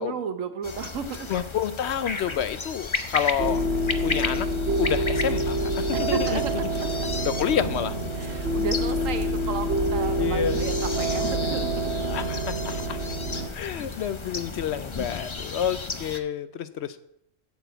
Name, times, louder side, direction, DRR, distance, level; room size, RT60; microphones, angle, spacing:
voice 1, 0.0-1.3 5.9-7.1 8.1-12.1, right 6 dB, 80° right, 10 dB, 1.3 m, -33 dB
sound 1, 0.6-16.2, left 4 dB, 30° left, 0.6 m, -34 dB
voice 2, 1.3-3.6 4.0-4.5 4.8-6.4 7.2-8.0 10.2-10.6 12.1-13.0 13.5-17.0, left 9 dB, 65° left, 13 dB, 0.8 m, -29 dB
sound 2, 3.4-13.5, right 1 dB, 55° right, 1.2 m, -27 dB
8.3 x 7.1 x 7.9 m, 0.78 s
omnidirectional pair, 1.3 m